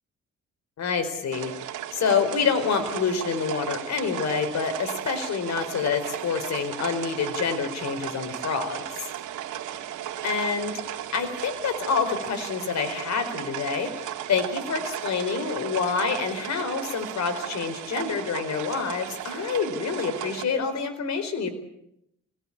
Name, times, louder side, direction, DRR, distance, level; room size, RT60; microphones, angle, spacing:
voice 1, 0.8-1.5 1.9-9.1 10.2-10.7 11.1-21.5, left 5 dB, 60° left, 8 dB, 4.6 m, -27 dB
sound 1, 1.3-20.4, right 11 dB, 80° right, 2.4 m, -35 dB
25.5 x 18.0 x 8.8 m, 0.80 s
cardioid pair, 90°, 30 cm